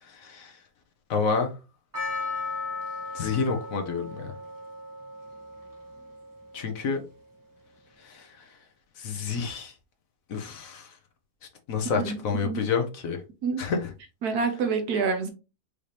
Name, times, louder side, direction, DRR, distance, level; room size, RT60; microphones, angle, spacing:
voice 1, 0.0-0.6 1.1-1.5 3.1-4.3 6.5-7.0 8.0-8.5 9.0-9.7 10.3-11.0 11.7-13.2 13.6-13.9, left 5 dB, 60° left, 1.1 m, -29 dB
Percussion, 1.9-6.9, left 3 dB, 15° right, 1.1 m, -36 dB
voice 2, 11.9-12.7 13.4-13.6 14.2-15.3, right 4 dB, 70° right, 1.4 m, -27 dB
5.0 x 2.8 x 3.2 m
omnidirectional pair, 1.7 m